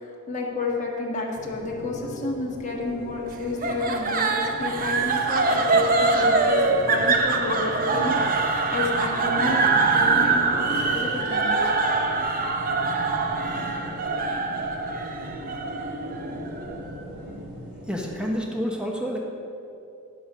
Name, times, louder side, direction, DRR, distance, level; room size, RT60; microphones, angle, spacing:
voice 1, 0.0-10.4 10.7-11.7, left 3 dB, 35° left, -2 dB, 1.5 m, -30 dB
sound 1, 1.3-18.3, equal, 90° right, 1.4 m, -37 dB
sound 2, 3.6-16.8, right 3 dB, 40° right, 0.7 m, -24 dB
voice 2, 17.9-19.2, equal, 5° right, 0 dB, 1.1 m, -28 dB
9.7 x 6.7 x 5.5 m, 2.6 s
head